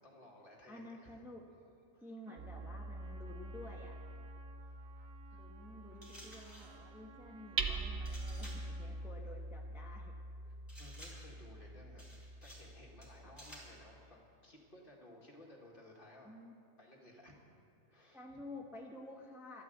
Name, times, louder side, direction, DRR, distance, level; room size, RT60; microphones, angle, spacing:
voice 1, 0.0-1.3 1.9-2.1 4.7-4.8 5.3-5.5 10.5-16.3 16.8-17.4 17.9-18.4, left 1 dB, 40° left, -1 dB, 2.3 m, -58 dB
voice 2, 0.7-1.4 2.0-4.0 5.3-10.1 13.2-13.3 16.2-16.5 18.1-19.6, left 1 dB, ahead, -1 dB, 1.3 m, -51 dB
Trumpet, 2.2-9.2, right 6 dB, 85° right, 1.3 m, -60 dB
Hammer, 2.4-14.1, right 3 dB, 55° right, 1.2 m, -45 dB
sound 1, 6.0-6.8 8.0-8.7 10.7-11.4 12.0-12.7 13.0-13.8, equal, 15° left, 3.7 m, -54 dB
13.0 x 12.0 x 8.0 m, 2.8 s
omnidirectional pair, 1.4 m